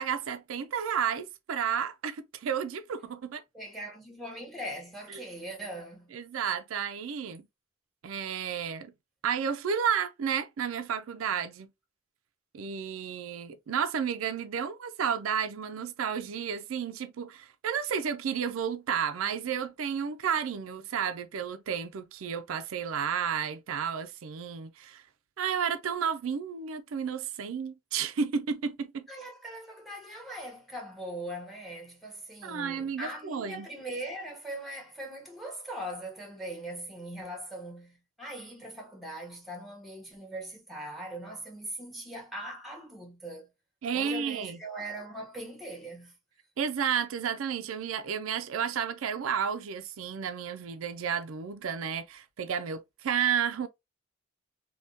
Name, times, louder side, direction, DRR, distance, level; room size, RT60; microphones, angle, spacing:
voice 1, 0.0-3.4 5.1-5.2 6.1-7.5 8.0-8.9 9.2-11.7 12.5-25.0 25.4-29.1 32.4-33.7 43.8-44.6 46.6-53.7, right 7 dB, 85° right, 0.4 m, -32 dB
voice 2, 3.5-6.1 29.1-43.5 43.9-46.1, right 1 dB, ahead, 1.1 m, -41 dB
3.4 x 2.3 x 2.6 m
head